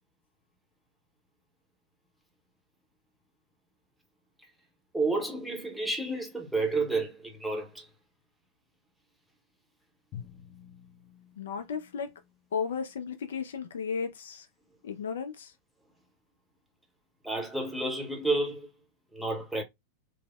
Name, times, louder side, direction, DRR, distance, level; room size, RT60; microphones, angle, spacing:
voice 1, 4.9-7.9 17.2-18.7 19.1-19.6, right 2 dB, ahead, 0.7 m, -30 dB
Drum, 10.1-13.1, left 9 dB, 35° left, 0.7 m, -50 dB
voice 2, 11.4-12.1 12.5-14.5 14.8-15.5, left 6 dB, 65° left, 0.4 m, -34 dB
3.2 x 2.0 x 2.2 m
figure-of-eight pair, 90°, 0 cm